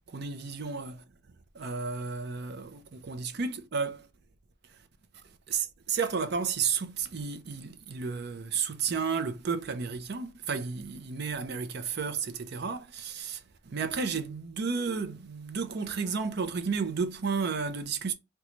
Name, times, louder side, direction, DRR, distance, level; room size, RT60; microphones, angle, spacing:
voice 1, 0.1-1.0 1.5-4.1 5.5-18.1, right 5 dB, 55° right, 0.5 m, -32 dB
3.1 x 2.3 x 3.8 m
head